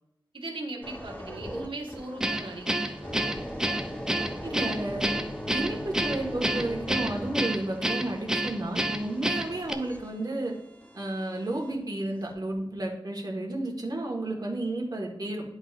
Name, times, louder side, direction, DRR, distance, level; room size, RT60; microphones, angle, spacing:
voice 1, 0.3-3.3, right 2 dB, 75° right, -1 dB, 1.5 m, -39 dB
sound 1, 0.8-11.8 12.3-12.5, equal, 20° left, 1.0 m, -40 dB
Guitar, 2.2-9.7, right 1 dB, 5° right, 0.5 m, -29 dB
voice 2, 4.4-5.1 5.5-10.5 10.9-15.4, right 2 dB, 50° right, -1 dB, 1.5 m, -32 dB
11.0 x 4.0 x 2.5 m, 0.87 s
wide cardioid pair, 70°, 9 cm